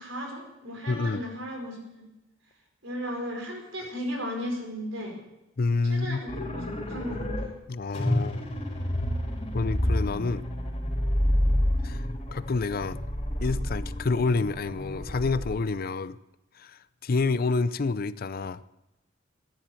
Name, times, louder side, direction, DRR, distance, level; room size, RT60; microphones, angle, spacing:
voice 1, 0.0-2.0 2.8-5.1 5.9-7.2, equal, 80° right, 2 dB, 4.8 m, -35 dB
voice 2, 0.9-1.2 5.6-6.2 7.7-8.4 9.5-10.4 11.8-12.1 12.3-13.0 13.4-16.2 16.6-18.6, left 3 dB, 50° left, 16 dB, 0.5 m, -28 dB
sound 1, 6.3-7.4 7.9-15.6, left 1 dB, 30° left, 3.2 m, -29 dB
14.0 x 10.5 x 7.7 m, 0.93 s
head